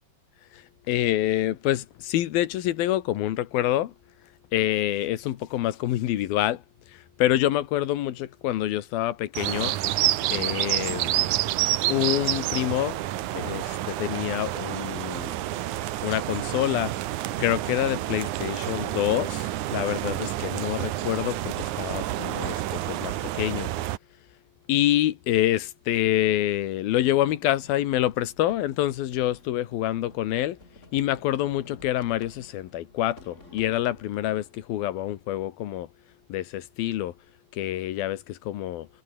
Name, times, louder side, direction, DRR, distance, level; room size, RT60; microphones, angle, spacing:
voice 1, 0.5-3.9 4.5-6.6 6.9-9.7 10.3-11.2 11.9-13.0 13.3-15.3 16.0-16.9 17.4-23.7 24.7-30.6 30.9-35.9 36.3-37.1 37.5-38.9, left 13 dB, 85° left, 3.1 m, -27 dB
sound 1, 9.4-24.0, right 14 dB, 70° right, 2.2 m, -29 dB
sound 2, 27.0-35.1, left 1 dB, 20° left, 8.3 m, -53 dB
omnidirectional pair, 4.2 m